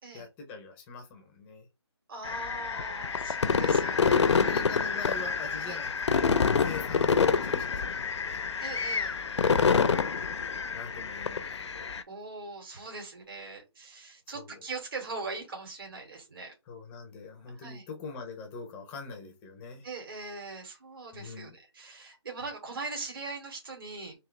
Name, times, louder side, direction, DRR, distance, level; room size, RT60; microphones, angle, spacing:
voice 1, 0.1-1.7 3.5-8.5 10.7-12.0 14.3-14.6 16.7-19.9 21.1-21.5, left 4 dB, 10° left, 0.5 m, -43 dB
voice 2, 2.1-4.6 5.7-5.8 8.6-9.2 12.1-16.5 17.6-17.8 19.8-24.2, right 3 dB, 50° right, 2.2 m, -41 dB
sound 1, 2.2-12.0, left 5 dB, 75° left, 0.5 m, -27 dB
3.7 x 2.8 x 3.2 m
hypercardioid pair, 165°, 15 cm